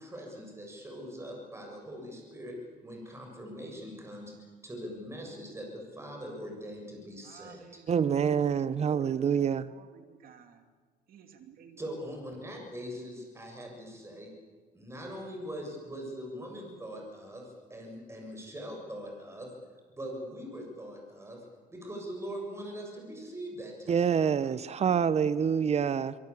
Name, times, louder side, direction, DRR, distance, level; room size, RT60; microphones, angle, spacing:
voice 1, 0.0-2.6 2.8-4.3 4.6-7.8 11.8-14.3 14.7-19.5 20.0-21.4 21.7-24.4, equal, 15° right, 1 dB, 7.3 m, -42 dB
voice 2, 7.2-8.2 9.1-9.2 9.7-10.6 11.1-11.8 24.4-24.5, right 8 dB, 60° right, 7 dB, 2.8 m, -55 dB
voice 3, 7.9-9.7 23.9-26.1, right 7 dB, 40° right, 16 dB, 0.9 m, -26 dB
24.5 x 23.5 x 8.5 m, 1.5 s
cardioid pair, 110°, 17 cm